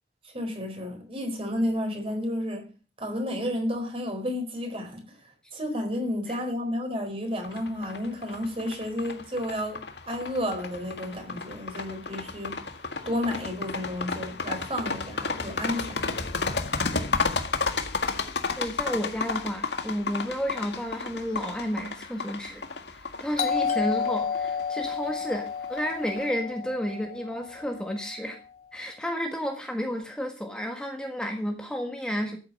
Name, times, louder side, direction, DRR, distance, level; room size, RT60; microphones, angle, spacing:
voice 1, 0.2-2.7 3.0-5.0 5.5-9.8 10.1-12.6 13.0-16.2, left 1 dB, 30° right, 4.3 m, -31 dB
sound 1, 7.4-26.2, left 4 dB, 70° left, 1.8 m, -32 dB
voice 2, 18.6-22.6 22.9-28.4 28.7-32.4, equal, 5° left, 1.6 m, -31 dB
Doorbell, 23.4-28.0, left 6 dB, 40° left, 2.3 m, -31 dB
13.5 x 8.5 x 6.6 m
head